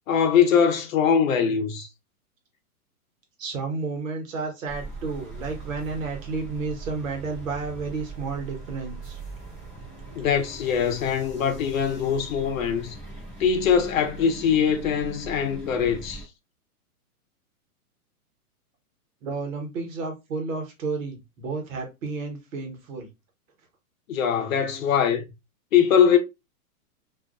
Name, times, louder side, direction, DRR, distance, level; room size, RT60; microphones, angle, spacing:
voice 1, 0.1-1.9 10.1-12.9 13.4-16.2 24.1-25.3 25.7-26.2, left 7 dB, 65° left, 0.7 m, -22 dB
voice 2, 3.4-9.2 19.2-23.1, right 4 dB, 60° right, 1.1 m, -31 dB
sound 1, 4.7-16.2, right 3 dB, 5° right, 0.3 m, -40 dB
2.5 x 2.1 x 2.4 m
hypercardioid pair, 150°, 45 cm